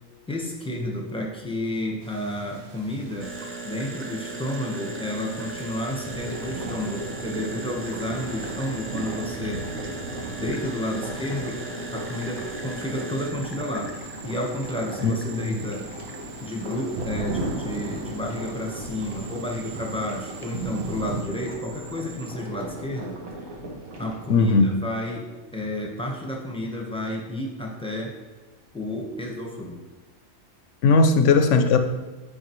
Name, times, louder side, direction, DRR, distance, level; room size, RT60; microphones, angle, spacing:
voice 1, 0.3-3.3 3.6-9.7 10.3-11.6 11.9-13.9 14.2-15.9 16.4-23.2 24.0-28.2 28.7-29.8, left 1 dB, 5° left, -1 dB, 0.8 m, -31 dB
sound 1, 2.0-21.2, right 2 dB, 55° right, 1.0 m, -39 dB
sound 2, 3.2-22.3, right 3 dB, 20° right, 0.4 m, -39 dB
sound 3, 6.1-24.7, right 1 dB, 85° right, 1.6 m, -39 dB
voice 2, 15.0-15.6 24.3-24.8 30.8-31.8, left 4 dB, 70° left, 7 dB, 0.8 m, -18 dB
8.8 x 5.0 x 3.0 m, 1.3 s
omnidirectional pair, 1.4 m